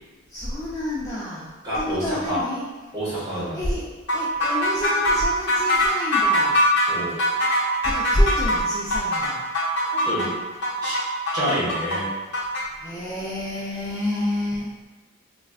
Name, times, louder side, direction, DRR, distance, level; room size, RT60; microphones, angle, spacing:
voice 1, 0.3-2.7 3.3-6.7 7.8-9.4 12.8-14.7, left 1 dB, 15° left, -8 dB, 0.3 m, -28 dB
voice 2, 1.6-2.4 2.9-3.6 6.9-7.1 9.9-10.3 10.8-11.0 11.3-12.1, equal, 20° right, -11 dB, 1.3 m, -28 dB
sound 1, 4.1-12.6, left 1 dB, 60° left, 0.8 m, -22 dB
3.1 x 2.5 x 2.4 m, 1.3 s
head